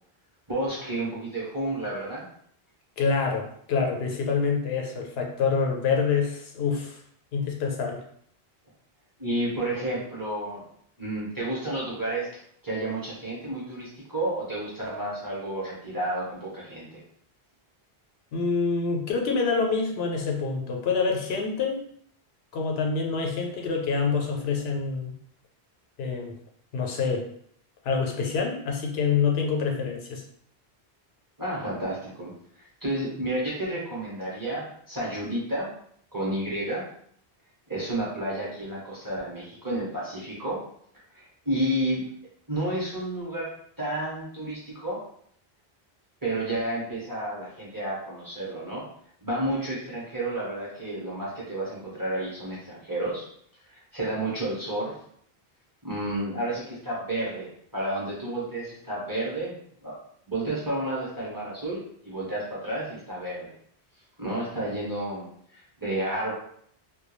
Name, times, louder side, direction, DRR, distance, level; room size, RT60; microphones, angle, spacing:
voice 1, 0.5-2.2 9.2-10.6 11.0-12.3 12.6-17.0 31.4-32.3 32.8-35.7 36.1-36.8 37.7-40.6 41.1-42.0 42.5-43.5 43.8-45.0 46.2-48.8 49.2-53.2 53.7-54.9 55.8-59.5 59.8-60.0 60.3-63.5 64.2-66.3, right 1 dB, 20° right, -6 dB, 0.7 m, -31 dB
voice 2, 3.0-7.0 7.3-8.0 18.3-21.8 22.5-25.1 26.0-26.3 26.7-27.3 27.8-30.2, left 5 dB, 75° left, 1 dB, 0.8 m, -26 dB
2.3 x 2.2 x 3.0 m, 0.65 s
omnidirectional pair, 1.1 m